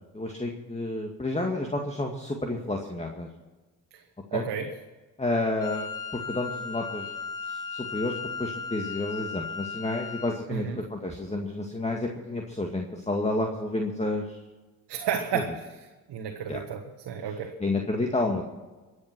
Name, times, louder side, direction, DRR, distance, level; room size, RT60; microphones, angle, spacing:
voice 1, 0.1-3.3 4.3-4.4 5.2-5.9 6.1-7.1 7.5-14.4 16.5-16.6 17.6-18.4, left 2 dB, 15° left, 2 dB, 2.0 m, -30 dB
voice 2, 4.3-4.7 10.5-10.8 14.9-15.6 16.1-17.5, right 7 dB, 70° right, 2 dB, 1.5 m, -31 dB
Wind instrument woodwind instrument, 5.6-10.4, left 5 dB, 50° left, 1.4 m, -36 dB
23.0 x 8.2 x 6.1 m, 1.2 s
hypercardioid pair, 50°, 42 cm